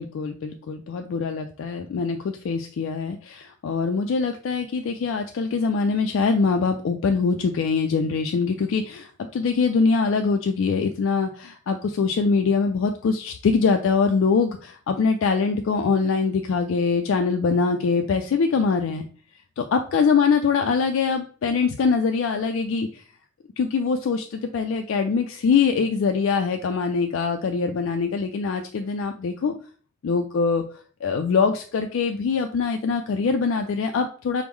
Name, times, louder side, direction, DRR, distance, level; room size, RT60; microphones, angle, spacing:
voice 1, 0.0-19.0 19.6-23.0 23.6-29.5 30.0-30.6 31.0-34.4, left 5 dB, 65° left, 5 dB, 0.3 m, -23 dB
4.6 x 2.0 x 3.5 m, 0.42 s
head